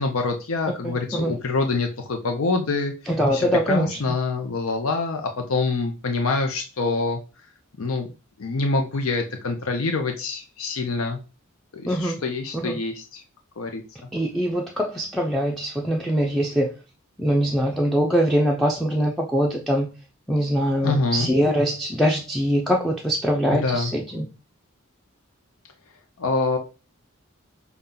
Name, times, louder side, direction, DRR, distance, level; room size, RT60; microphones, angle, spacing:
voice 1, 0.0-2.9 3.3-7.2 7.8-8.1 8.4-11.2 11.7-13.2 13.6-13.8 20.8-21.3 23.5-23.9 26.2-26.6, left 3 dB, 85° left, 4 dB, 0.6 m, -25 dB
voice 2, 0.8-1.3 3.1-4.0 11.9-12.2 12.5-12.8 14.1-16.7 17.2-19.9 20.3-24.3, equal, ahead, -2 dB, 0.4 m, -23 dB
5.5 x 2.3 x 3.8 m, 0.32 s
head